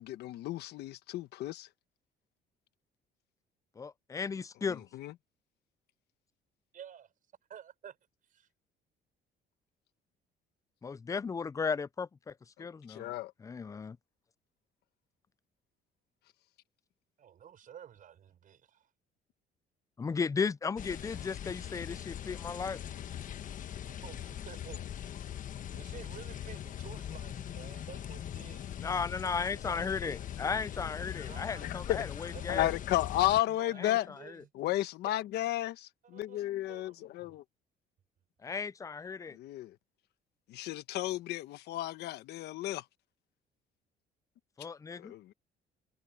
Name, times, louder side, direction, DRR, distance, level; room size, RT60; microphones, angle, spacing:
voice 1, 0.0-1.7 4.7-5.1 12.6-13.3 31.9-32.0 32.5-34.1 34.5-37.4 39.3-39.7 40.5-42.8 45.0-45.3, left 14 dB, 80° left, 1.2 m, -33 dB
voice 2, 3.8-4.8 10.8-12.3 12.6-13.1 13.4-14.0 20.0-22.8 28.8-32.7 33.8-33.9 38.4-39.4 44.6-45.1, left 5 dB, 20° left, 0.4 m, -35 dB
voice 3, 6.7-7.1 7.5-8.0 8.2-8.5 17.2-18.9 24.0-25.1 25.7-28.7 29.3-30.2 31.2-31.9 32.3-32.7 33.2-34.5 35.0-35.2 36.0-36.4 36.7-37.4, right 9 dB, 50° right, 6.6 m, -52 dB
sound 1, 20.8-33.4, left 10 dB, 50° left, 1.2 m, -41 dB
cardioid pair, 110°, 17 cm